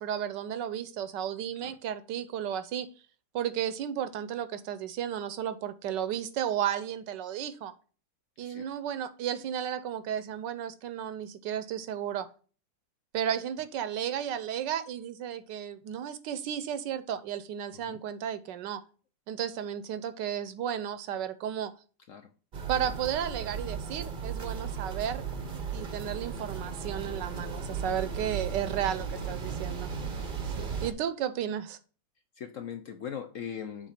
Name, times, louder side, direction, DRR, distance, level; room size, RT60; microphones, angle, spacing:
voice 1, 0.0-2.9 3.3-7.7 8.4-12.3 13.1-18.8 19.3-21.7 22.7-25.2 25.7-29.9 30.6-31.8, right 9 dB, 80° right, 12 dB, 1.3 m, -33 dB
voice 2, 17.7-18.0 22.1-22.3 29.2-29.4 32.3-33.9, left 8 dB, 65° left, 7 dB, 0.8 m, -41 dB
sound 1, 22.5-30.9, right 6 dB, 40° right, 0.7 m, -36 dB
7.3 x 3.5 x 5.7 m, 0.37 s
omnidirectional pair, 2.0 m